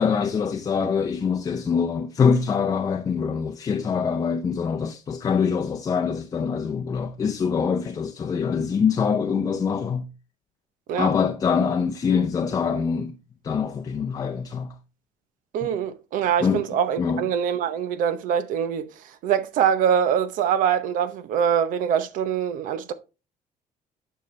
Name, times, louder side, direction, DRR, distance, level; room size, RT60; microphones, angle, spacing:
voice 1, 0.0-10.1 11.0-13.2 13.4-14.7 15.6-15.7 16.4-16.6 17.0-17.3, left 6 dB, 25° left, 0.6 m, -24 dB
voice 2, 15.5-18.9 19.2-22.9, right 8 dB, 75° right, 0.8 m, -23 dB
9.1 x 5.6 x 3.2 m
cardioid pair, 155°, 14 cm